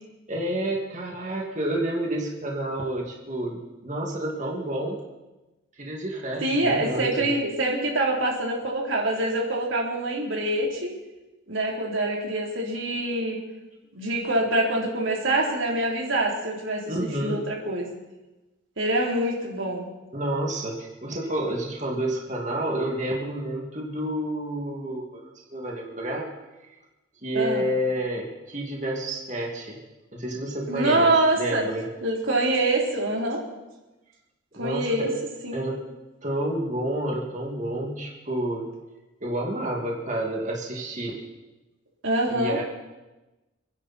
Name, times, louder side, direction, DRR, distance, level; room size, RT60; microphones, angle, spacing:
voice 1, 0.3-5.0 5.8-7.3 16.9-17.4 20.1-26.3 26.6-26.7 27.2-29.8 30.1-31.1 31.4-31.9 34.5-35.2 35.5-35.8 36.2-38.7 39.2-41.2 42.3-42.6, right 1 dB, 35° right, -1 dB, 2.5 m, -29 dB
voice 2, 6.4-10.9 11.5-13.4 13.9-17.9 18.8-19.9 27.3-27.7 30.7-31.6 32.0-33.4 34.6-35.1 35.4-35.6 42.0-42.6, right 1 dB, 75° right, -2 dB, 3.9 m, -25 dB
28.0 x 10.5 x 4.5 m, 1.1 s
head